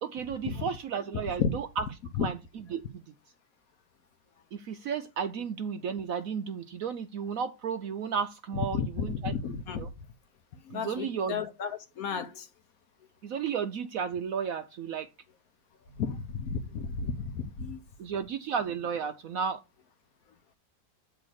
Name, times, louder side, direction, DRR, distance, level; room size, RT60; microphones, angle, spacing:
voice 1, 0.0-1.8 2.2-2.4 2.7-3.0 4.5-9.3 9.8-9.9 10.7-11.4 13.2-15.1 18.0-19.6, right 6 dB, 70° right, 0.8 m, -33 dB
voice 2, 8.7-9.8 10.7-12.5 16.0-17.8, left 6 dB, 65° left, 1.0 m, -33 dB
8.7 x 3.4 x 6.3 m
omnidirectional pair, 1.9 m